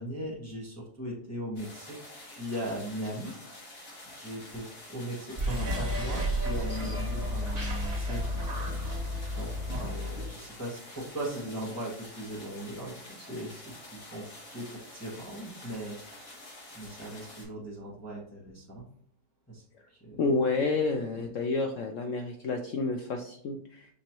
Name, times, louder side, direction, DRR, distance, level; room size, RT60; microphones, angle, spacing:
voice 1, 0.0-2.0 2.2-3.3 4.1-9.0 9.3-16.4 16.7-18.8 19.5-19.6 19.9-20.2 21.2-21.3, right 1 dB, 10° left, -6 dB, 1.2 m, -39 dB
sound 1, 1.6-17.4, left 1 dB, 50° left, 2.0 m, -48 dB
sound 2, 5.3-10.4, equal, 35° right, 2.1 m, -32 dB
voice 2, 20.2-23.9, left 3 dB, 75° left, 3 dB, 0.7 m, -29 dB
6.1 x 3.0 x 2.9 m, 0.64 s
omnidirectional pair, 1.9 m